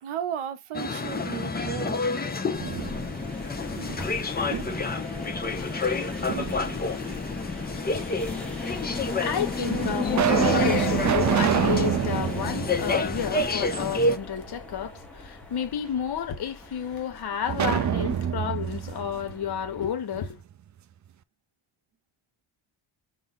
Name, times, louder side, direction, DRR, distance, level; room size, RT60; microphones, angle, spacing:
voice 1, 0.0-2.1, right 9 dB, 80° right, 0.9 m, -34 dB
sound 1, 0.7-14.2, left 3 dB, 20° left, 0.7 m, -29 dB
sound 2, 2.3-3.3 3.8-5.0 6.3-7.1 8.0-8.1 8.9-9.0 9.6-13.7 14.1-14.2 17.5-20.3, right 10 dB, 40° right, 0.4 m, -27 dB
sound 3, 2.5-19.9, left 4 dB, 5° left, 1.1 m, -35 dB
voice 2, 9.2-20.4, left 8 dB, 50° left, 1.0 m, -31 dB
5.1 x 2.2 x 4.0 m
cardioid pair, 90°, 49 cm